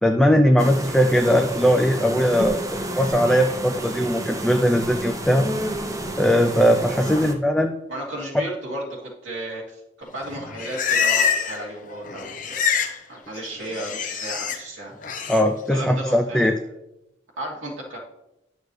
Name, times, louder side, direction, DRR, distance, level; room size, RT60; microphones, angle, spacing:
voice 1, 0.0-5.5 6.2-7.7 15.3-16.5, equal, 5° left, 3 dB, 0.4 m, -19 dB
sound 1, 0.6-7.3, right 1 dB, 15° right, 0.8 m, -30 dB
voice 2, 7.9-12.7 13.1-14.9 15.7-16.5 17.4-18.0, right 1 dB, 85° right, -4 dB, 2.7 m, -34 dB
Livestock farm animals working animals, 10.2-11.7 11.9-13.0 13.3-14.6 15.0-15.4, left 7 dB, 40° left, 0.9 m, -25 dB
11.5 x 6.4 x 3.3 m, 0.92 s
head